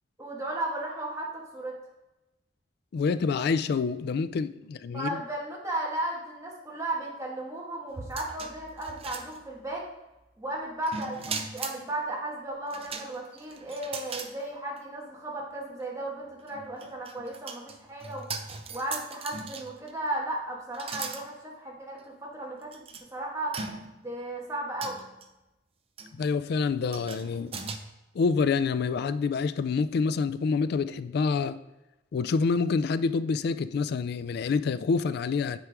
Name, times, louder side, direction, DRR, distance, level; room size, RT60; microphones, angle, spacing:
voice 1, 0.2-1.7 4.9-9.9 10.4-18.3 18.7-22.8 23.1-23.6 24.0-25.0, right 1 dB, 15° right, -3 dB, 1.6 m, -35 dB
voice 2, 2.9-5.2 26.1-27.5 28.1-31.6 32.1-35.6, left 5 dB, 60° left, 14 dB, 0.3 m, -27 dB
sound 1, 7.9-9.8 10.9-11.8 12.7-14.3 14.8-14.9 16.4-19.9 20.7-21.3 22.0-22.1 22.7-23.0 23.5-24.1 24.8-25.3 26.0-26.2 26.9-27.8, right 5 dB, 30° right, 0.5 m, -39 dB
9.0 x 4.5 x 3.5 m, 0.99 s
head